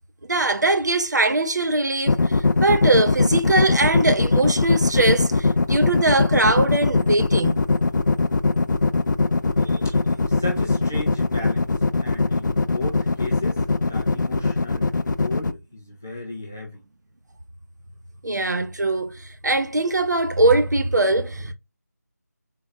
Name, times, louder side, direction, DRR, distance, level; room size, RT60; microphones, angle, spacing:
voice 1, 0.3-7.6 9.6-9.9 18.2-21.5, right 2 dB, 70° right, 0.7 m, -21 dB
sound 1, 2.1-15.5, left 3 dB, 80° left, 0.4 m, -20 dB
voice 2, 10.3-16.8, left 2 dB, 10° left, 0.3 m, -35 dB
3.8 x 2.5 x 3.1 m
figure-of-eight pair, 170°, 10 cm